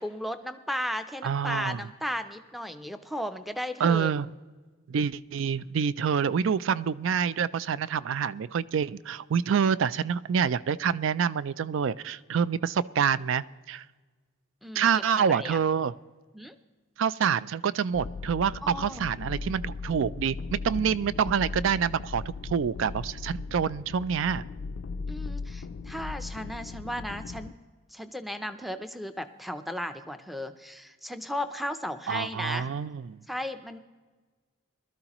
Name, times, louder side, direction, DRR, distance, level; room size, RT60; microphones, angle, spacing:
voice 1, 0.0-4.1 6.2-6.3 14.6-15.6 16.3-16.5 18.6-19.1 25.1-27.6 27.9-32.7 33.3-33.8, equal, ahead, 8 dB, 0.5 m, -35 dB
voice 2, 1.2-1.8 3.8-4.3 4.9-13.8 14.7-15.9 17.0-24.4 32.1-33.2, right 7 dB, 65° right, 18 dB, 0.3 m, -27 dB
sound 1, 17.9-27.5, left 4 dB, 65° left, 0.4 m, -38 dB
20.5 x 13.0 x 3.0 m, 1.4 s
head